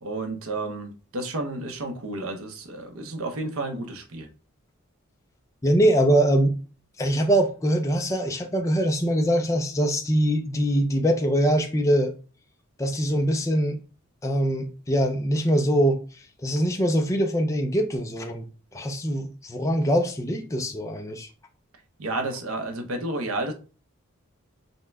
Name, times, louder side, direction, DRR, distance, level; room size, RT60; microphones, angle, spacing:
voice 1, 0.0-4.3 22.0-23.5, right 2 dB, 75° right, 0.8 m, -31 dB
voice 2, 5.6-6.6 7.0-12.1 12.8-13.8 14.2-18.4 18.7-21.3, equal, 15° left, 0.4 m, -23 dB
5.4 x 2.2 x 3.4 m
head